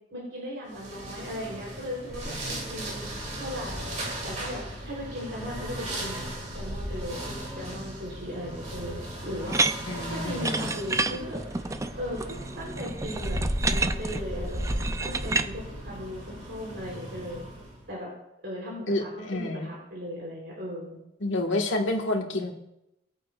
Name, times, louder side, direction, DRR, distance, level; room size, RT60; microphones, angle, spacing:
voice 1, 0.1-3.1 3.3-3.9 4.2-6.2 6.5-9.6 10.1-11.4 12.0-13.4 13.6-17.5 17.9-18.1 18.4-21.0, equal, 75° right, -5 dB, 3.5 m, -37 dB
sound 1, 0.7-17.8, equal, 40° right, 2.9 m, -36 dB
sound 2, 9.5-15.5, right 3 dB, 15° right, 0.4 m, -30 dB
voice 2, 9.9-10.7 18.9-19.7 21.2-22.5, left 2 dB, 85° left, 1 dB, 1.7 m, -29 dB
20.0 x 8.5 x 2.4 m, 0.85 s
head